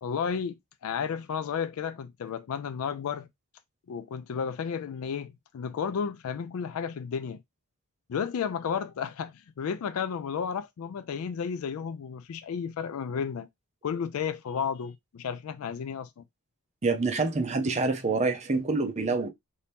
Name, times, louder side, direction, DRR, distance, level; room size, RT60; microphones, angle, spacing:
voice 1, 0.0-3.3 3.9-7.4 8.1-13.5 13.8-16.2, left 7 dB, 70° left, 0.3 m, -32 dB
voice 2, 16.8-19.3, right 3 dB, 30° right, 0.6 m, -26 dB
2.8 x 2.7 x 3.4 m
head